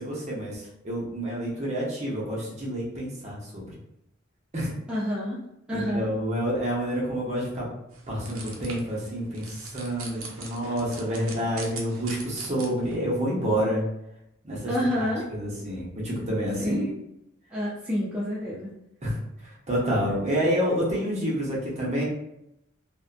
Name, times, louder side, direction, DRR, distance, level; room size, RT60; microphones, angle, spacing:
voice 1, 0.0-3.7 4.5-4.7 5.7-7.7 8.1-13.8 14.4-16.8 19.0-22.0, equal, 30° right, -5 dB, 0.8 m, -28 dB
voice 2, 4.9-5.4 5.7-6.1 14.7-15.3 16.6-17.0 17.5-18.7, left 1 dB, 5° right, -9 dB, 0.4 m, -28 dB
sound 1, 7.9-12.9, right 3 dB, 75° right, 0.5 m, -41 dB
2.6 x 2.2 x 2.4 m, 0.82 s
head